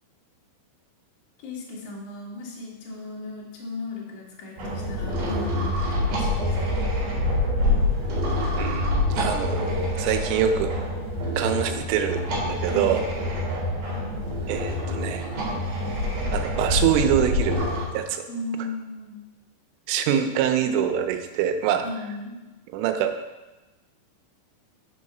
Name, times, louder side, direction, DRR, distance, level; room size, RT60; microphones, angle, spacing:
voice 1, 1.4-6.8 12.6-12.9 18.3-19.2 21.8-22.4, left 2 dB, 60° left, -4 dB, 2.2 m, -36 dB
sound 1, 4.6-17.9, left 1 dB, 60° right, 3.2 m, -26 dB
voice 2, 8.6-9.6 10.0-10.7 11.4-13.0 14.5-15.3 16.3-17.6 17.9-18.2 19.9-21.8 22.7-23.1, right 9 dB, 90° right, 7 dB, 3.1 m, -24 dB
7.0 x 4.8 x 5.4 m, 1.1 s
omnidirectional pair, 5.4 m